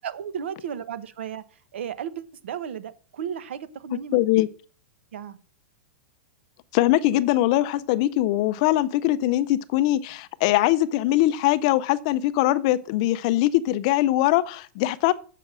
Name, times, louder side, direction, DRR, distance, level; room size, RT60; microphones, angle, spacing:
voice 1, 0.0-1.4 1.7-4.2 5.1-5.4, right 8 dB, 70° right, 1.0 m, -34 dB
voice 2, 4.1-4.5 6.7-15.1, left 15 dB, 30° left, 0.4 m, -22 dB
7.6 x 6.0 x 7.4 m
supercardioid pair, 180°, 7 cm